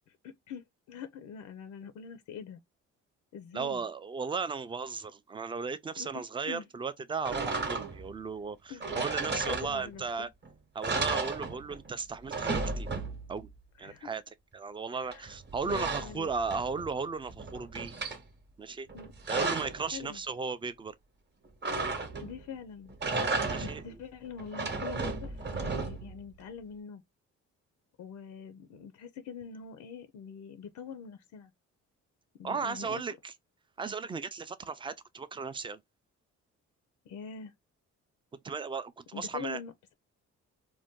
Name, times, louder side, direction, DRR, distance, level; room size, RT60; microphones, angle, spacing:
voice 1, 0.1-2.6 3.3-3.8 6.0-6.1 6.4-6.7 8.7-9.0 9.5-10.3 13.8-14.1 14.9-15.4 15.6-16.3 18.9-19.1 19.9-20.2 22.2-22.9 23.6-27.0 28.0-31.5 32.4-33.0 37.1-37.5 39.1-39.9, left 7 dB, 70° left, 0.5 m, -44 dB
voice 2, 3.5-10.3 10.7-12.9 13.3-13.5 13.8-14.2 14.5-18.0 18.6-18.9 19.3-21.0 21.7-21.9 23.5-23.8 32.4-33.3 33.8-35.8 38.4-39.6, right 5 dB, 15° right, 0.3 m, -36 dB
sound 1, 7.2-8.1 8.8-10.1 10.4-10.5 10.8-11.9 12.1-13.4 15.1-16.9 17.3-18.2 18.9-19.8 21.6-22.4 22.9-23.9 24.4-26.2, right 3 dB, 35° right, 0.9 m, -34 dB
2.6 x 2.2 x 3.5 m
cardioid pair, 90°, 30 cm